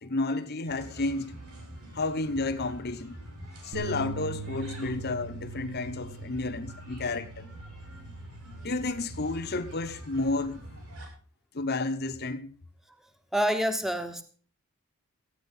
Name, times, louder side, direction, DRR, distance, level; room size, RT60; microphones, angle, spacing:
voice 1, 0.0-1.4 1.9-3.2 3.6-7.5 8.6-10.6 11.5-12.6, left 2 dB, 45° left, 1.1 m, -31 dB
sound 1, 0.7-11.1, right 1 dB, 70° right, 7.0 m, -45 dB
sound 2, 3.7-10.0, right 2 dB, 90° right, 2.6 m, -43 dB
voice 2, 13.3-14.2, equal, ahead, 1.1 m, -27 dB
15.5 x 9.3 x 5.6 m
head